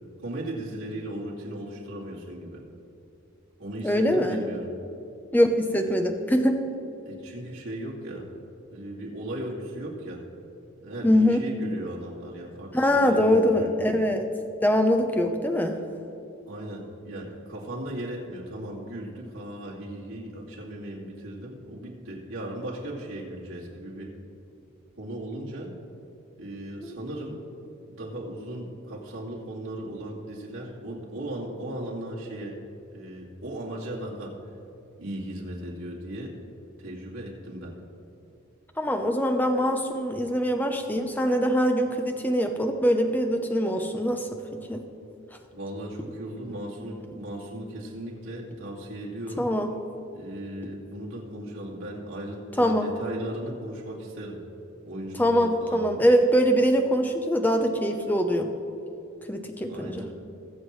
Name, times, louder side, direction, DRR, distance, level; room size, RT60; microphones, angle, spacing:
voice 1, 0.2-2.6 3.6-4.7 7.0-8.3 8.7-10.3 10.8-13.7 16.5-24.1 24.9-25.7 26.4-27.4 27.9-32.6 32.9-34.4 35.0-36.3 36.8-37.8 45.5-49.5 50.1-54.4 54.8-55.8 59.7-60.1, right 1 dB, 75° right, -4 dB, 2.4 m, -37 dB
voice 2, 3.8-4.4 5.3-6.6 11.0-11.4 12.7-14.3 14.6-15.8 26.8-26.9 38.8-44.8 49.4-49.7 52.6-52.9 55.2-58.5 59.3-60.1, equal, 10° left, 5 dB, 0.7 m, -23 dB
21.5 x 7.4 x 3.2 m, 2.7 s
head